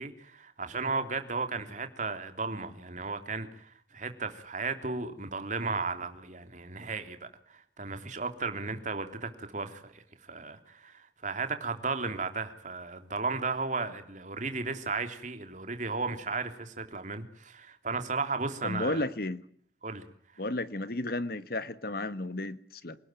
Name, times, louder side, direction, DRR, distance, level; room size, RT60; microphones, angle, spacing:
voice 1, 0.0-10.0 10.3-19.0 19.8-20.1 20.3-20.4, right 4 dB, 45° right, 3.3 m, -35 dB
voice 2, 18.6-19.4 20.4-23.0, left 2 dB, 55° left, 1.5 m, -33 dB
28.0 x 19.5 x 9.2 m
head